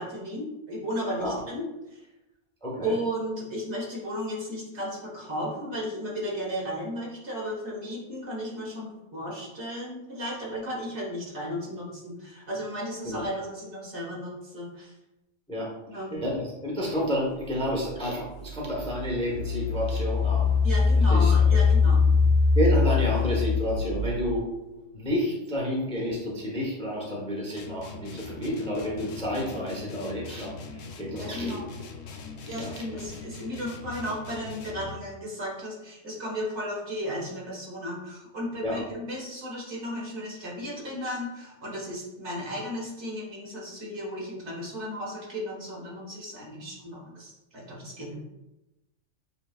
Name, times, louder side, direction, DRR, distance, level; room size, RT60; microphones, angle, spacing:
voice 1, 0.0-1.6 1.9-2.1 2.8-14.9 15.9-16.2 20.6-22.0 31.2-31.7 32.5-48.2, equal, 60° right, -5 dB, 1.8 m, -34 dB
voice 2, 2.6-2.9 13.0-13.3 15.5-15.7 16.1-20.6 21.1-21.3 22.5-24.6 24.9-31.6 32.5-32.7 38.6-38.8, equal, 5° left, -4 dB, 0.9 m, -30 dB
Engine, 17.7-17.8 18.4-24.4, left 4 dB, 10° right, 1.6 m, -22 dB
sound 1, 27.6-35.1, left 3 dB, 80° left, 1.0 m, -42 dB
7.9 x 2.8 x 2.4 m, 0.98 s
omnidirectional pair, 1.3 m